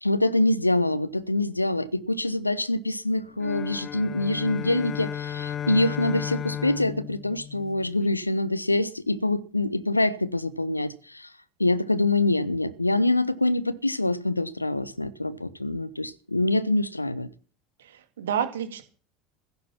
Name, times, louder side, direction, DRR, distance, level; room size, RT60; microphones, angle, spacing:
voice 1, 0.0-11.3 11.6-17.3, left 2 dB, 85° left, 0.9 m, -25 dB
sound 1, 3.4-8.1, left 10 dB, 30° left, 0.6 m, -34 dB
voice 2, 17.8-18.8, right 8 dB, 65° right, 2.3 m, -30 dB
15.5 x 10.5 x 5.9 m
figure-of-eight pair, 75°, 0 cm